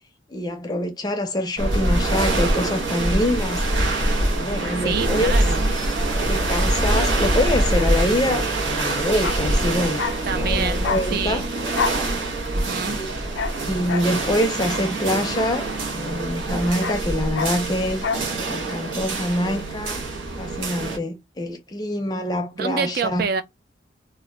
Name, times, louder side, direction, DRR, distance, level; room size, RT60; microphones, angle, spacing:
voice 1, 0.3-3.6 4.4-5.3 6.2-10.0 10.3-11.4 12.8-13.1 13.6-18.1 18.5-20.0 20.4-23.3, left 1 dB, 20° left, 0.5 m, -25 dB
sound 1, 1.6-21.0, right 2 dB, 80° right, 0.7 m, -24 dB
voice 2, 4.8-5.7 10.3-11.5 12.5-13.0 22.5-23.4, right 6 dB, 50° right, 0.4 m, -27 dB
Bark, 9.1-16.1 16.4-18.3 18.6-18.8, left 5 dB, 75° left, 0.4 m, -30 dB
2.1 x 2.1 x 3.7 m
head